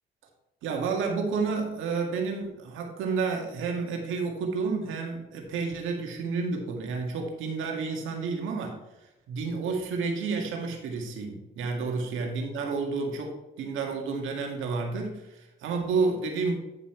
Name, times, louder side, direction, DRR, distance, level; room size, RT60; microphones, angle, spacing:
voice 1, 0.6-8.7 9.3-16.6, right 4 dB, 85° right, 2 dB, 1.9 m, -30 dB
9.9 x 5.6 x 4.4 m, 0.98 s
cardioid pair, 90°, 20 cm